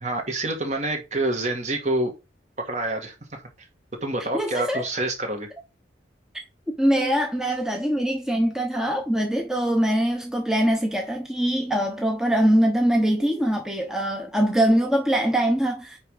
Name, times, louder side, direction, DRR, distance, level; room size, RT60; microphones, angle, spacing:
voice 1, 0.0-2.1 2.6-3.4 4.0-5.5, right 2 dB, 40° right, 2.0 m, -27 dB
voice 2, 4.2-4.9 6.8-16.0, right 1 dB, 5° right, 0.9 m, -23 dB
9.7 x 3.5 x 5.0 m
head